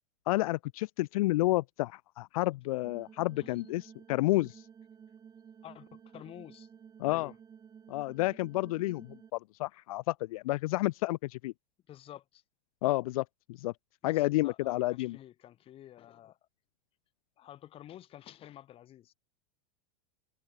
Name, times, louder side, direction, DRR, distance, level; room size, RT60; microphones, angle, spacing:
voice 1, 0.3-4.6 7.0-7.3 7.9-11.5 12.8-13.7 14.0-15.2, left 19 dB, 70° left, 0.5 m, -30 dB
sound 1, 2.8-9.3, right 7 dB, 20° right, 1.0 m, -53 dB
voice 2, 5.6-6.7 7.0-7.4 11.9-12.4 14.0-16.4 17.4-19.1, left 12 dB, 30° left, 1.1 m, -50 dB
supercardioid pair, 125°, 19 cm